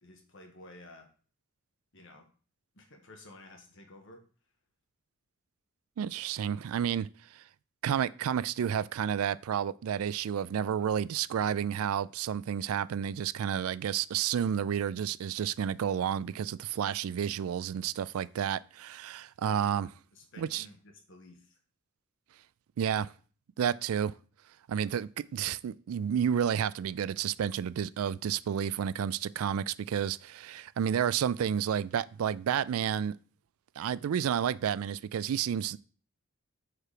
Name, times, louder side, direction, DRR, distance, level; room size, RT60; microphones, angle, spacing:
voice 1, 0.0-1.1 1.9-2.3 2.7-4.2 20.1-21.6, left 2 dB, 60° left, 1.4 m, -52 dB
voice 2, 6.0-7.1 7.3-7.4 7.8-19.9 20.4-20.7 22.8-23.1 23.6-24.1 24.7-33.1 33.8-35.8, right 8 dB, 75° right, 0.3 m, -31 dB
5.8 x 4.8 x 4.9 m
head